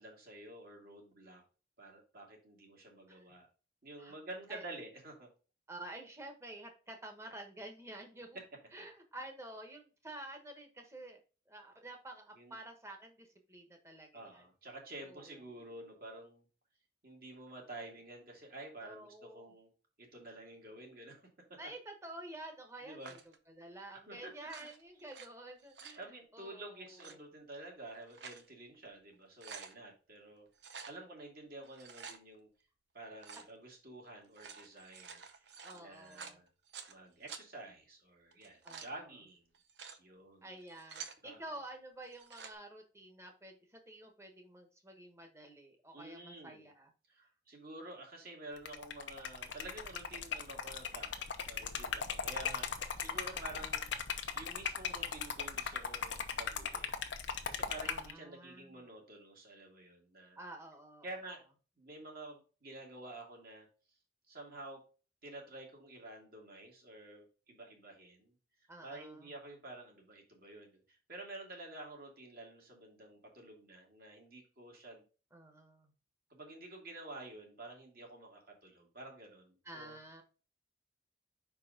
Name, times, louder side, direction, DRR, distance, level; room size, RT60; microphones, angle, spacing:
voice 1, 0.0-1.4 1.8-3.5 3.8-5.3 12.4-12.6 14.1-16.4 17.0-19.7 20.0-21.6 22.8-23.2 24.1-24.7 26.0-30.5 30.9-32.5 32.9-36.5 36.9-39.5 40.0-40.5 41.2-41.6 45.9-46.7 47.1-53.9 54.3-60.4 61.0-61.4 61.8-63.7 64.3-64.8 65.2-68.3 68.8-75.1 76.3-80.0, right 2 dB, 55° right, 0 dB, 2.1 m, -50 dB
voice 2, 5.7-8.4 8.7-11.2 11.5-14.5 15.0-15.7 18.8-19.5 21.6-23.2 23.5-27.2 30.9-31.1 33.4-33.5 35.6-36.4 38.6-39.0 40.4-46.9 53.1-53.6 57.9-58.8 60.4-61.1 68.7-69.3 75.3-75.9 79.6-80.2, right 1 dB, 15° right, 4 dB, 1.2 m, -50 dB
sound 1, 23.0-23.4 24.4-25.3 25.6-26.0 26.9-27.2 27.8-28.5 28.9-29.0 29.2-29.7 30.6-31.0 31.6-32.2 33.2-33.5 34.2-36.9 37.3-37.4 38.3-38.9 39.5-40.0 40.6-41.2 42.1-42.5, right 6 dB, 70° right, 0.7 m, -50 dB
Liquid, 48.6-58.1, left 6 dB, 85° left, 0.8 m, -38 dB
5.3 x 4.6 x 3.8 m, 0.35 s
head